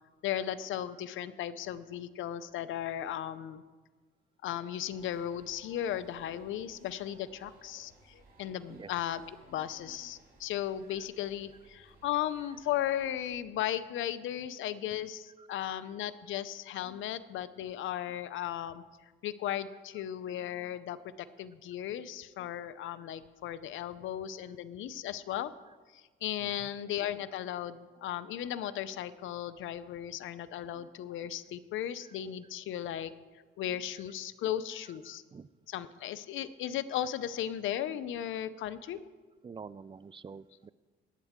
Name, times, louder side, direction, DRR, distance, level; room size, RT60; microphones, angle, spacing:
voice 1, 0.2-3.6 4.4-18.8 19.2-21.0 21.4-25.5 25.9-33.1 33.6-35.2 35.7-39.0, left 11 dB, 80° left, 14 dB, 0.6 m, -36 dB
sound 1, 4.9-13.3, right 2 dB, 50° right, 4.7 m, -61 dB
voice 2, 15.4-15.7 26.4-26.7 35.1-35.5 39.4-40.7, right 5 dB, 25° right, 18 dB, 0.4 m, -48 dB
20.0 x 9.1 x 3.6 m, 1.4 s
cardioid pair, 90°, 20 cm